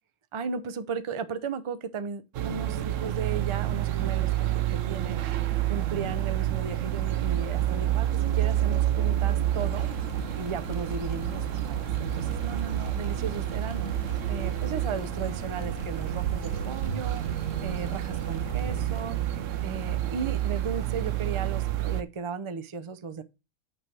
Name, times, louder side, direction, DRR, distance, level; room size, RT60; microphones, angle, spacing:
voice 1, 0.3-9.9 10.3-23.2, right 5 dB, 35° right, 0.5 m, -36 dB
sound 1, 2.4-22.0, right 12 dB, 75° right, 1.0 m, -29 dB
sound 2, 9.6-19.1, left 8 dB, 80° left, 1.0 m, -45 dB
9.0 x 3.3 x 5.9 m
omnidirectional pair, 1.3 m